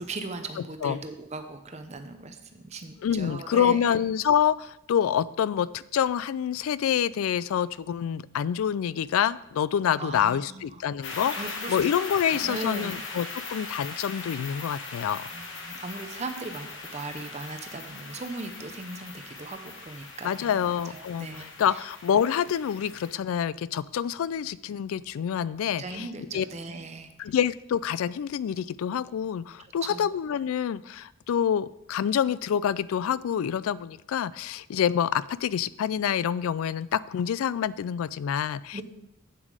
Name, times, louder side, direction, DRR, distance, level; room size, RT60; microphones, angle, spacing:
voice 1, 0.0-3.9 10.0-10.8 11.3-11.9 12.3-13.0 15.3-21.8 25.8-27.1 29.8-30.1 38.7-38.8, right 3 dB, 30° right, 7 dB, 0.6 m, -38 dB
voice 2, 3.0-15.3 20.2-26.1 26.3-26.5 27.2-38.8, left 8 dB, 75° left, 19 dB, 0.3 m, -27 dB
sound 1, 11.0-23.1, left 3 dB, 55° left, 1.1 m, -40 dB
8.3 x 7.3 x 4.9 m, 0.89 s
head